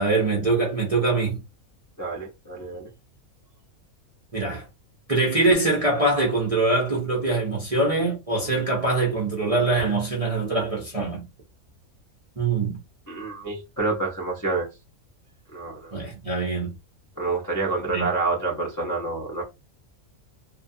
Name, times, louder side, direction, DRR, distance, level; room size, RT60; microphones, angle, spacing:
voice 1, 0.0-1.4 4.3-4.7 5.1-11.2 12.4-12.8 15.9-16.7 17.9-18.1, right 3 dB, 40° right, 0.5 m, -23 dB
voice 2, 2.0-2.9 13.1-14.7 15.5-16.0 17.2-19.4, right 3 dB, 30° left, 0.3 m, -28 dB
2.7 x 2.2 x 2.6 m
omnidirectional pair, 1.5 m